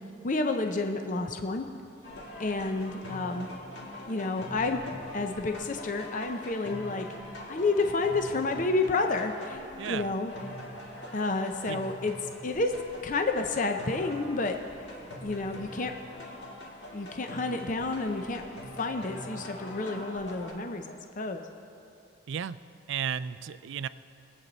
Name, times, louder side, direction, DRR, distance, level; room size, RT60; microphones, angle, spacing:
voice 1, 0.2-1.7 2.4-3.5 4.1-4.8 5.1-7.1 7.5-9.6 9.9-10.3 11.1-12.1 12.4-12.7 13.0-14.6 15.2-15.9 16.9-18.4 18.8-21.4, left 3 dB, 40° left, 5 dB, 0.6 m, -30 dB
sound 1, 2.0-20.5, left 1 dB, 55° left, 1.9 m, -43 dB
voice 2, 9.8-10.1 11.7-11.8 22.3-22.6 22.9-23.9, right 8 dB, 65° right, 14 dB, 0.4 m, -33 dB
23.0 x 8.4 x 4.0 m, 2.5 s
head